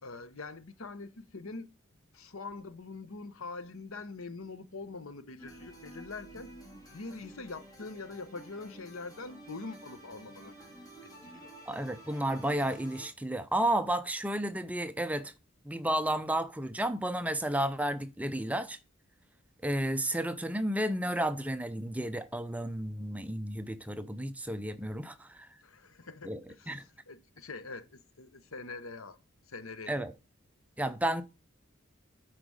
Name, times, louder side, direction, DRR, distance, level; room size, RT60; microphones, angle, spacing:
voice 1, 0.0-1.7 2.1-6.5 6.9-10.5 11.0-11.5 25.6-29.2 29.5-30.0, left 3 dB, 85° left, 1.0 m, -44 dB
sound 1, 5.4-13.1, right 1 dB, 20° left, 3.3 m, -51 dB
voice 2, 11.7-15.3 15.6-18.8 19.6-25.5 26.2-26.4 26.7-26.8 29.9-30.1 30.8-31.2, right 1 dB, 5° right, 0.5 m, -32 dB
8.9 x 5.0 x 6.3 m
head